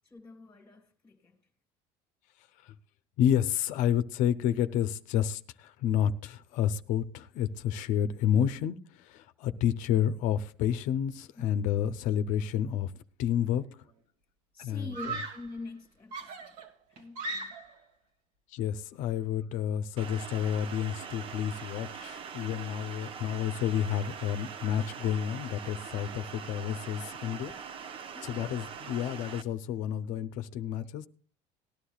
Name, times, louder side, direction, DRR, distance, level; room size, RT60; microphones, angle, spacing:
voice 1, 0.0-1.4 11.3-11.4 14.5-16.6 16.9-17.6 19.4-19.5 27.5-27.6 27.8-28.5, left 3 dB, 15° left, 1.6 m, -46 dB
voice 2, 3.2-12.9 13.2-13.6 14.6-14.9 18.5-27.5 28.2-31.1, left 10 dB, 65° left, 0.7 m, -30 dB
Screaming, 13.4-13.8 14.9-15.6 16.1-17.8, right 3 dB, 70° right, 1.7 m, -39 dB
sound 1, 20.0-29.4, right 7 dB, 40° right, 0.7 m, -43 dB
19.0 x 11.5 x 2.4 m
cardioid pair, 120°, 14 cm